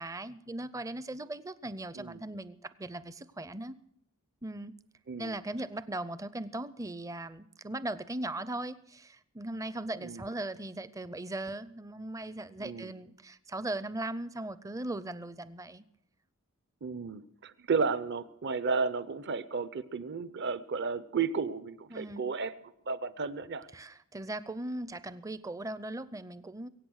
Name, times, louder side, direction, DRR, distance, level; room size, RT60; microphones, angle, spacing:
voice 1, 0.0-3.8 4.4-4.7 5.2-15.9 21.9-22.2 23.7-26.7, right 1 dB, 15° right, 15 dB, 0.5 m, -38 dB
voice 2, 12.6-12.9 16.8-22.5 22.9-23.7, right 5 dB, 50° right, 15 dB, 0.7 m, -33 dB
23.0 x 8.7 x 6.4 m, 0.78 s
head